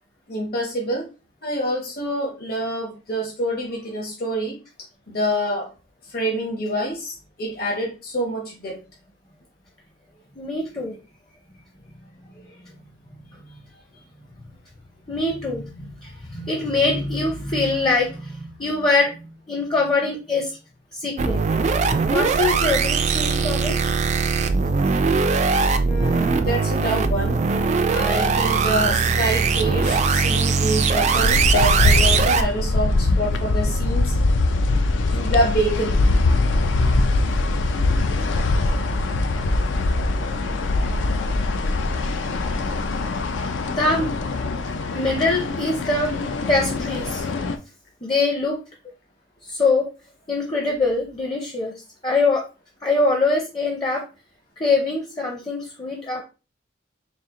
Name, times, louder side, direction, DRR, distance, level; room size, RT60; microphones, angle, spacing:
voice 1, 0.3-1.0 1.4-4.6 5.1-5.7 6.1-8.8 25.8-27.4 27.9-34.1 35.1-36.0 40.5-40.6, equal, 50° left, -2 dB, 1.0 m, -26 dB
voice 2, 10.4-11.0 12.6-12.7 15.1-20.5 20.9-21.4 22.1-23.7 43.6-44.1 44.9-46.1 46.5-47.2 48.0-48.6 49.5-49.9 50.3-51.7 52.0-52.4 52.8-54.0 54.6-56.2, left 3 dB, 25° left, 0 dB, 0.6 m, -23 dB
sound 1, 21.2-32.4, right 4 dB, 35° right, 0.3 m, -20 dB
sound 2, 31.2-47.6, left 2 dB, 75° left, 0.5 m, -22 dB
4.2 x 2.4 x 3.7 m, 0.31 s
head